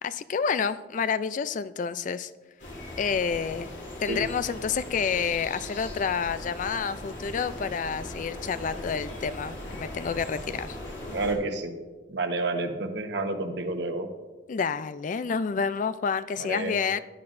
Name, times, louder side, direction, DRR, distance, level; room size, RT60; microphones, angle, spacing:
voice 1, 0.0-2.3 3.0-3.7 4.0-10.8 14.5-17.0, left 6 dB, 40° left, 14 dB, 0.3 m, -29 dB
sound 1, 2.6-11.3, left 1 dB, 70° left, 3.1 m, -39 dB
voice 2, 11.1-11.7 12.1-14.1 16.4-16.8, right 2 dB, 65° right, 5 dB, 1.1 m, -30 dB
14.5 x 10.5 x 2.6 m, 1.3 s
head